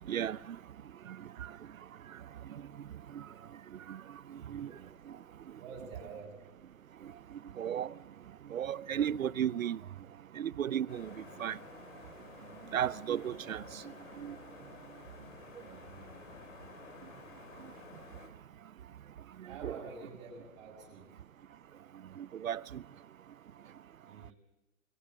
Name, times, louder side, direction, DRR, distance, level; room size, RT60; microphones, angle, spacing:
voice 1, 0.1-0.6 1.0-1.6 2.1-2.8 3.1-3.3 3.7-4.8 5.1-5.2 5.5-5.6 7.0-8.0 8.4-9.8 10.3-11.6 12.7-14.4 17.6-17.7 19.4-19.8 22.2-22.8, right 9 dB, 75° right, 0.8 m, -36 dB
voice 2, 4.2-4.9 5.6-6.4 15.6-15.9 19.4-21.1 24.0-24.3, right 4 dB, 45° right, 6.6 m, -48 dB
sound 1, 10.9-18.3, left 5 dB, 70° left, 4.3 m, -52 dB
23.5 x 15.5 x 8.1 m
hypercardioid pair, 130°, 40 cm